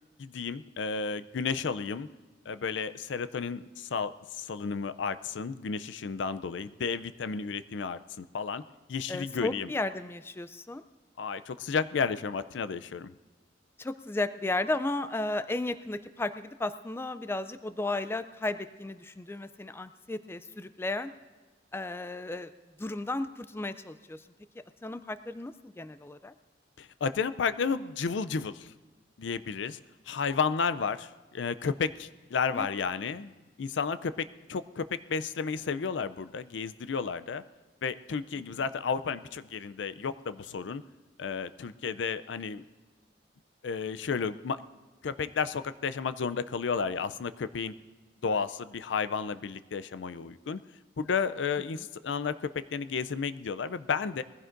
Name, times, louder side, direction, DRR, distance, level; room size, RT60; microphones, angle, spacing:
voice 1, 0.2-2.1 2.5-8.6 8.9-9.7 11.2-13.1 26.8-28.7 29.2-29.8 30.1-33.3 33.6-37.4 37.8-40.8 41.2-42.6 43.6-44.6 45.0-47.7 48.2-50.6 51.0-54.2, left 5 dB, 80° left, 13 dB, 0.5 m, -32 dB
voice 2, 9.1-10.8 13.8-21.1 21.7-22.5 22.8-24.2 24.8-26.3 32.5-32.7 51.7-51.8, left 2 dB, 15° left, 12 dB, 0.3 m, -34 dB
21.0 x 15.5 x 2.6 m, 1.3 s
head